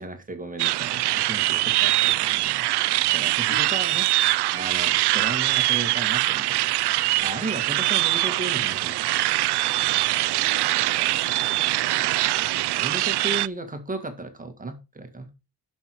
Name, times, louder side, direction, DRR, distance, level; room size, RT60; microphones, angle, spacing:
voice 1, 0.0-2.7 3.1-4.0 4.5-6.7 7.2-9.0 12.3-15.3, right 2 dB, 20° right, 1.8 m, -35 dB
sound 1, 0.6-13.5, right 17 dB, 85° right, 0.5 m, -23 dB
voice 2, 1.6-2.3 3.5-4.0 4.8-5.1 7.1-7.7 10.2-12.3, left 7 dB, 80° left, 3.6 m, -47 dB
11.0 x 6.0 x 4.7 m
wide cardioid pair, 140°, 39 cm